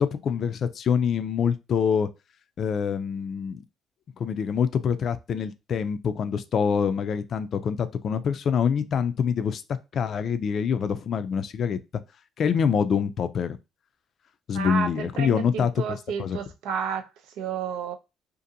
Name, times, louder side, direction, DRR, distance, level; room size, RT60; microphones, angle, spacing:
voice 1, 0.0-2.1 2.6-3.6 4.2-11.8 12.4-13.6 14.5-16.4, left 7 dB, 50° left, 0.3 m, -25 dB
voice 2, 14.5-18.0, right 7 dB, 90° right, 0.5 m, -31 dB
2.7 x 2.5 x 2.5 m
cardioid pair, 130°, 0 cm